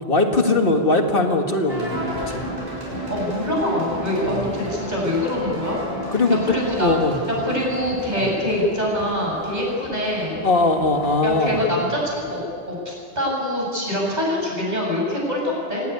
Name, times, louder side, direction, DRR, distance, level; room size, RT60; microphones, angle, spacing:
voice 1, 0.1-2.4 4.3-4.5 6.1-6.4 6.8-7.2 8.2-8.3 10.4-11.9, left 2 dB, 60° left, 4 dB, 2.2 m, -20 dB
sound 1, 1.7-12.4, equal, 75° right, 7.1 m, -33 dB
voice 2, 3.0-5.8 6.3-7.0 7.4-10.4 11.2-12.4 12.7-15.8, left 1 dB, 45° right, -3 dB, 7.4 m, -24 dB
25.5 x 18.0 x 9.7 m, 2.5 s
omnidirectional pair, 1.1 m